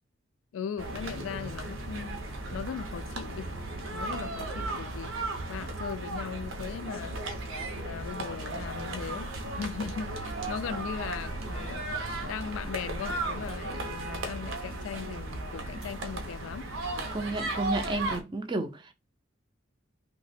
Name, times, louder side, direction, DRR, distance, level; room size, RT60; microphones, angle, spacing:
voice 1, 0.5-2.2 2.5-3.5 3.9-5.1 5.5-7.2 7.8-11.9 12.2-16.7, left 7 dB, 80° left, 0.3 m, -38 dB
sound 1, 0.8-18.2, right 2 dB, 80° right, 0.6 m, -35 dB
voice 2, 17.1-18.9, right 2 dB, 25° right, 0.3 m, -32 dB
2.8 x 2.1 x 4.0 m
head